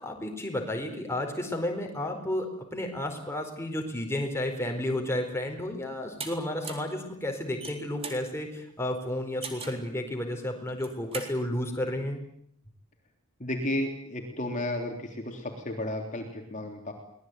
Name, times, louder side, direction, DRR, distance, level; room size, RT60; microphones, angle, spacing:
voice 1, 0.0-12.2, left 1 dB, 10° left, 3 dB, 4.5 m, -32 dB
sound 1, 6.2-6.3 6.6-6.9 7.4-8.2 9.4-9.8 10.7-11.3, right 5 dB, 25° right, 3.8 m, -39 dB
voice 2, 13.4-16.9, left 1 dB, 35° left, 3 dB, 3.6 m, -33 dB
24.5 x 20.5 x 9.3 m, 0.68 s
head